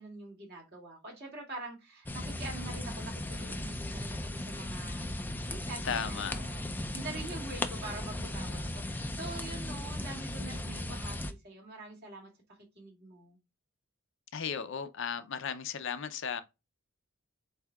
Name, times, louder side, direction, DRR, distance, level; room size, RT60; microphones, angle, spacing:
voice 1, 0.0-5.1 5.3-13.4, right 2 dB, 50° right, 2.4 m, -45 dB
sound 1, 2.1-11.3, left 1 dB, 10° left, 0.4 m, -37 dB
voice 2, 5.8-6.3 14.3-16.4, left 7 dB, 60° left, 0.5 m, -35 dB
7.9 x 2.8 x 2.3 m
head